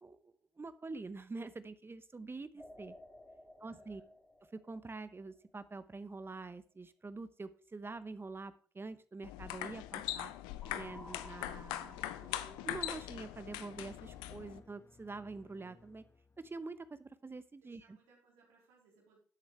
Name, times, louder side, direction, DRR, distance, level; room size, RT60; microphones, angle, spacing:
voice 1, 0.0-3.0 3.6-4.0 4.5-10.3 10.7-16.0 16.4-18.0, right 3 dB, 30° right, 13 dB, 0.8 m, -46 dB
sound 1, 2.6-5.8 10.6-13.4, left 1 dB, 10° left, 3.6 m, -56 dB
voice 2, 3.6-4.1 17.6-19.2, right 3 dB, 85° right, -3 dB, 3.6 m, -67 dB
sound 2, 9.2-14.6, left 14 dB, 80° left, 0.5 m, -41 dB
sound 3, 12.7-16.8, left 3 dB, 35° left, 1.2 m, -61 dB
12.5 x 8.2 x 3.2 m, 0.43 s
hypercardioid pair, 45°, 8 cm